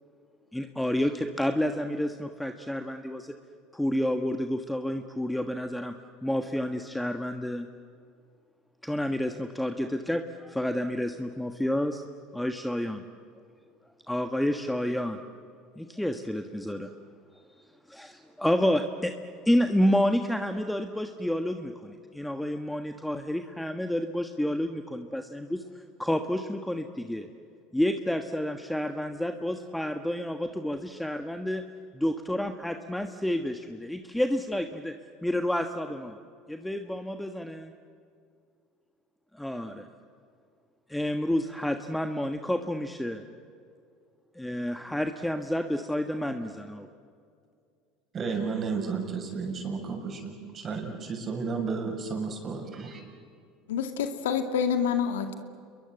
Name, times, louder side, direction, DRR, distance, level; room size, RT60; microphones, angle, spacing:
voice 1, 0.5-3.3 3.7-5.9 6.2-7.7 8.8-12.0 12.3-13.0 14.1-15.2 15.8-16.9 17.5-17.6 17.9-19.2 19.4-27.3 27.7-31.6 31.9-34.9 35.2-36.2 36.5-37.7 39.3-39.9 40.9-43.3 44.3-46.8, left 1 dB, 5° left, 7 dB, 1.4 m, -29 dB
voice 2, 48.1-53.0, right 5 dB, 35° right, 3 dB, 6.7 m, -32 dB
voice 3, 53.7-55.3, left 7 dB, 85° left, 7 dB, 2.2 m, -27 dB
29.0 x 22.5 x 7.9 m, 2.4 s
hypercardioid pair, 85°, 0 cm